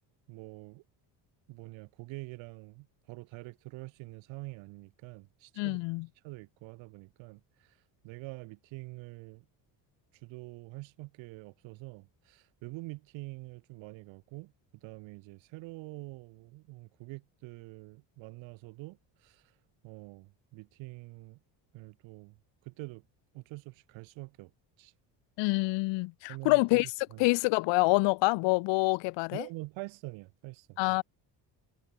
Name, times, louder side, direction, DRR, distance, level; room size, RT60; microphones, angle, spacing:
voice 1, 0.3-0.8 1.5-5.8 6.2-7.8 8.0-9.4 10.2-14.5 14.8-19.4 19.8-21.4 21.7-22.4 22.6-23.0 23.3-24.5 24.8-24.9 26.3-26.8 27.1-27.3 29.3-30.8, right 22 dB, 85° right, 2.4 m, -45 dB
voice 2, 5.6-6.1 25.4-26.9 27.2-29.5 30.8-31.0, left 25 dB, 75° left, 0.5 m, -26 dB
cardioid pair, 105°, 44 cm